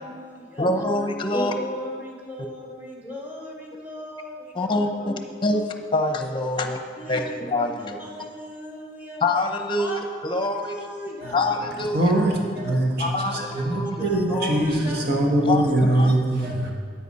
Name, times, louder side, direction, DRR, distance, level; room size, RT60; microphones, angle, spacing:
voice 1, 0.1-0.6 1.3-5.7 6.5-7.3 8.0-9.2 9.8-10.0 10.6-11.5 11.9-12.3 12.5-12.8 14.0-15.0 15.4-15.5 16.4-16.5, equal, 10° right, -1 dB, 1.6 m, -37 dB
voice 2, 0.6-1.5 4.5-5.1 5.4-6.8 7.1-8.0 9.2-10.7 11.3-12.1 13.0-14.0 14.3-14.6 15.4-16.1, left 2 dB, 25° left, 5 dB, 0.8 m, -25 dB
voice 3, 11.9-12.4 12.6-13.1 13.5-16.7, right 1 dB, 60° right, 0 dB, 1.5 m, -22 dB
10.0 x 9.0 x 4.2 m, 2.1 s
head